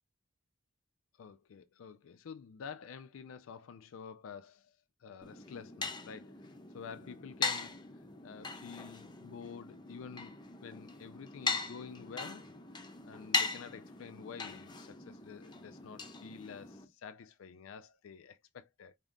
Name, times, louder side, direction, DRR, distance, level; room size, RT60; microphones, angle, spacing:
voice 1, 1.2-6.4 6.7-7.8 8.2-12.5 13.1-19.0, left 6 dB, 90° left, 0.4 m, -49 dB
sound 1, 5.2-16.9, left 4 dB, 20° left, 0.7 m, -40 dB
5.3 x 3.6 x 2.5 m
head